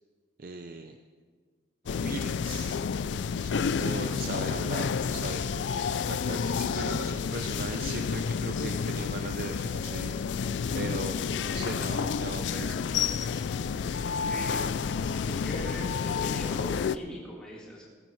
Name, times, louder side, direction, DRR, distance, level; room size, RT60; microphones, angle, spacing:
voice 1, 0.4-1.0 1.9-2.8 3.4-10.3 10.7-13.4, right 3 dB, 50° right, 6 dB, 0.5 m, -39 dB
sound 1, 1.9-17.0, left 6 dB, 70° left, 0.3 m, -30 dB
sound 2, 7.7-15.7, left 2 dB, 55° left, 1.1 m, -49 dB
voice 2, 14.3-14.7 15.3-17.9, equal, 5° left, -5 dB, 1.9 m, -40 dB
15.5 x 15.0 x 3.2 m, 1.5 s
head